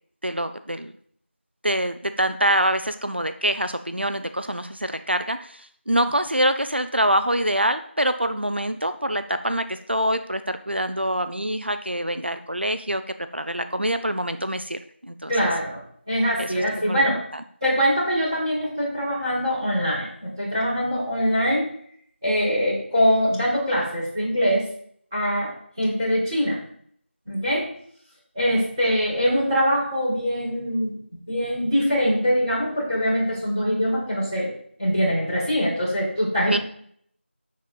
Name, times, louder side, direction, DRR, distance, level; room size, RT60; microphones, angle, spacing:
voice 1, 0.2-0.9 1.6-13.0 13.3-15.5 16.4-17.0 36.5-36.6, right 1 dB, 60° right, 10 dB, 0.7 m, -25 dB
voice 2, 15.3-15.8 16.1-17.2 17.6-21.6 22.2-24.6 25.1-26.6 27.2-27.7 28.3-34.5 34.8-36.6, equal, ahead, -25 dB, 1.7 m, -23 dB
9.5 x 7.2 x 4.0 m, 0.63 s
figure-of-eight pair, 180°, 7 cm